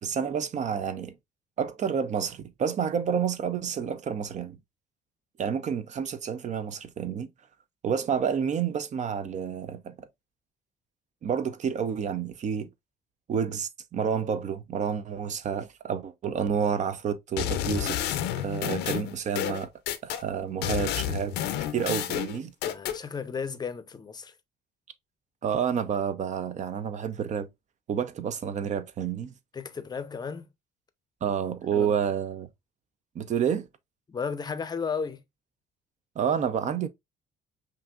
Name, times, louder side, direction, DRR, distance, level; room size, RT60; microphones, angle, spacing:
voice 1, 0.0-1.1 1.6-4.6 5.4-7.3 7.8-10.1 11.2-12.7 13.3-18.0 18.4-19.7 20.0-21.4 21.7-22.5 25.4-27.5 27.9-29.3 31.2-32.5 33.1-33.7 36.2-36.9, right 7 dB, 45° right, 0.6 m, -29 dB
sound 1, 17.4-20.2 20.6-23.0, left 11 dB, 85° left, 0.7 m, -30 dB
voice 2, 22.6-24.3 29.5-30.5 31.7-31.9 34.1-35.2, left 5 dB, 25° left, 0.6 m, -34 dB
5.6 x 2.6 x 2.4 m
cardioid pair, 110°, 17 cm